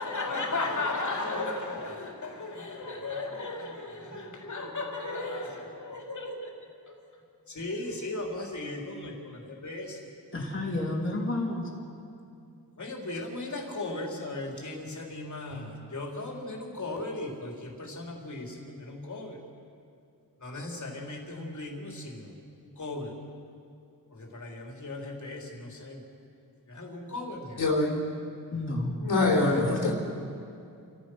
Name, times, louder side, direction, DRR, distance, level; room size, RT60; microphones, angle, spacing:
voice 1, 0.0-6.4 7.6-9.1 9.6-9.9 12.8-15.7 15.9-18.5 18.8-19.4 20.4-22.0 22.8-23.1 24.3-25.4 25.8-26.0 26.8-27.5, left 2 dB, 50° left, 3.8 m, -35 dB
voice 2, 10.3-11.7 28.5-28.9 29.2-29.9, left 2 dB, 30° left, 3.7 m, -31 dB
voice 3, 27.6-28.0 29.0-29.9, left 2 dB, 75° left, 3.7 m, -24 dB
28.5 x 14.5 x 6.4 m
wide cardioid pair, 90°, 39 cm